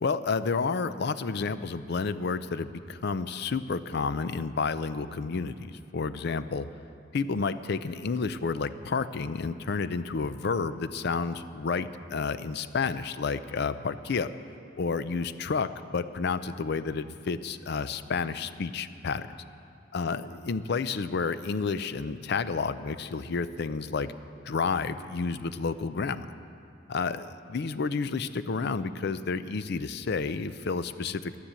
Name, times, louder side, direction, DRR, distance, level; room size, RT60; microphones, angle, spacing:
voice 1, 0.0-6.7 7.1-14.3 14.8-19.3 19.9-24.1 24.4-26.3 26.9-31.4, left 4 dB, 60° left, 13 dB, 0.5 m, -30 dB
11.5 x 9.9 x 7.5 m, 2.6 s
head